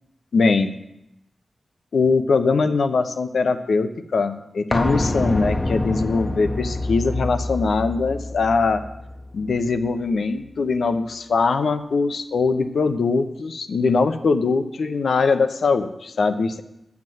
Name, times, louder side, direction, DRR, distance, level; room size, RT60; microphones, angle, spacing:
voice 1, 0.3-0.7 1.9-8.8 9.3-16.6, left 4 dB, 80° left, 7 dB, 0.7 m, -21 dB
sound 1, 4.7-10.3 10.6-10.7, left 1 dB, 20° left, 0.8 m, -27 dB
8.8 x 5.9 x 7.7 m, 0.85 s
cardioid pair, 50°, 0 cm